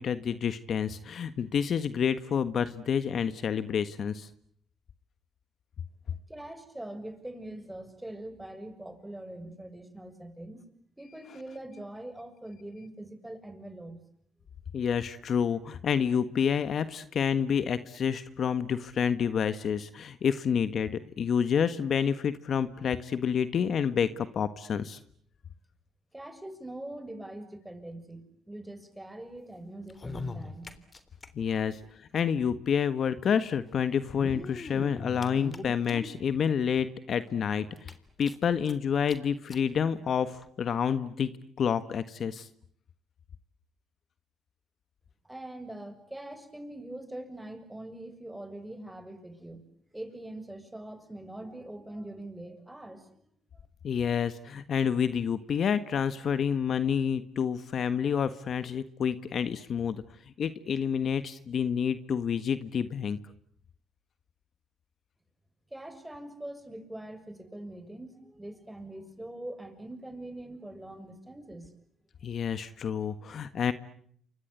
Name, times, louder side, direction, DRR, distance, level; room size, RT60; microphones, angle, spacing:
voice 1, 0.0-4.3 14.7-25.0 31.3-37.9 38.2-41.3 41.6-42.5 53.8-60.0 60.4-63.2 72.2-73.7, left 7 dB, 60° left, 12 dB, 1.5 m, -28 dB
voice 2, 6.3-10.7 11.0-14.0 26.1-30.7 31.5-31.6 45.2-49.7 49.9-53.2 65.7-71.7, right 1 dB, 10° right, 9 dB, 6.9 m, -43 dB
sound 1, 29.8-31.3 31.5-31.6 31.8-31.9 33.0-33.1 33.9-36.2 36.8-36.9 37.3-37.4 37.8-38.7 39.1-39.2 39.5-39.6 40.4-40.5, left 3 dB, 35° left, 3.5 m, -40 dB
29.5 x 25.0 x 8.2 m, 0.66 s
supercardioid pair, 65°, 0 cm